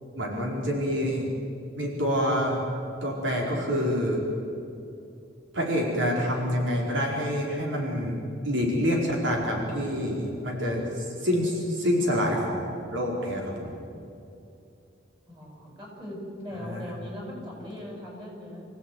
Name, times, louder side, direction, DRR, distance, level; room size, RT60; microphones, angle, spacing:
voice 1, 0.1-1.3 1.8-2.7 3.0-4.2 5.5-8.2 8.4-12.7 12.9-13.7 16.6-16.8, equal, 80° right, -1 dB, 5.0 m, -27 dB
voice 2, 15.3-18.7, left 1 dB, 25° right, -2 dB, 7.9 m, -39 dB
27.5 x 16.5 x 9.5 m, 2.7 s
head